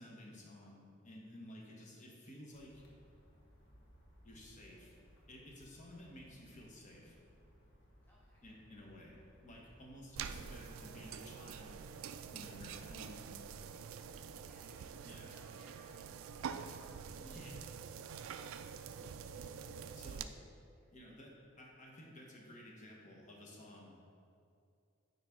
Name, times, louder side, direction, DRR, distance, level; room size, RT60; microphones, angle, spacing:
voice 1, 0.0-2.8 4.2-4.9 5.3-7.2 8.4-11.8 12.3-13.4 15.0-15.3 17.2-17.7 20.0-20.4 20.9-24.0, left 1 dB, 35° left, -2 dB, 1.2 m, -54 dB
sound 1, 2.5-11.2, equal, 65° left, 1.2 m, -63 dB
voice 2, 8.0-8.5 10.2-10.5 12.7-13.4 13.8-17.0 20.8-20.9, equal, 10° left, -5 dB, 0.5 m, -69 dB
sound 2, 10.2-20.2, right 7 dB, 80° right, 0.3 m, -46 dB
9.5 x 4.1 x 3.6 m, 2.4 s
head